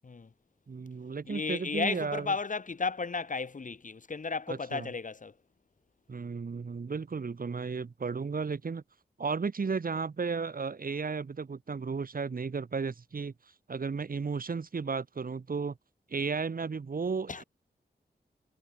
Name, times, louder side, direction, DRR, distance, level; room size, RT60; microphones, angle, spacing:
voice 1, 0.7-2.3 4.5-4.9 6.1-8.8 9.2-13.3 13.7-15.8 16.1-17.4, right 5 dB, 55° right, 3.6 m, -34 dB
voice 2, 1.3-5.3 17.3-17.4, left 4 dB, 50° left, 3.5 m, -34 dB
wide cardioid pair, 125°, 17 cm